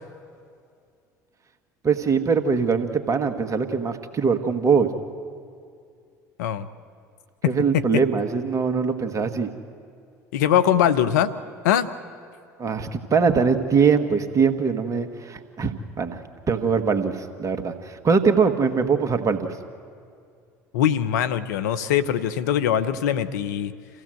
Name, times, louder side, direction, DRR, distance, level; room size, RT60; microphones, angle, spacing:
voice 1, 1.8-4.9 7.5-9.5 12.6-16.2 16.5-19.5, right 5 dB, 35° right, 7 dB, 2.0 m, -22 dB
voice 2, 10.3-11.3 11.6-11.9 20.7-23.7, left 10 dB, 80° left, 12 dB, 0.9 m, -21 dB
28.0 x 15.5 x 7.9 m, 2.3 s
hypercardioid pair, 70°, 9 cm